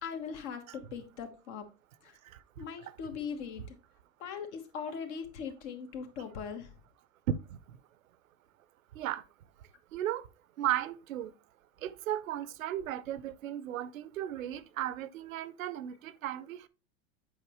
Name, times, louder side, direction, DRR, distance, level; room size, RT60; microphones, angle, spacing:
voice 1, 0.0-1.7 2.0-2.2 2.6-3.8 4.2-6.7, left 6 dB, 65° left, 1.6 m, -40 dB
voice 2, 2.2-2.9 7.3-7.8 8.9-9.2 9.9-10.3 10.6-11.3 11.8-16.7, right 11 dB, 85° right, 0.6 m, -35 dB
8.0 x 5.3 x 3.0 m
hypercardioid pair, 105°, 40 cm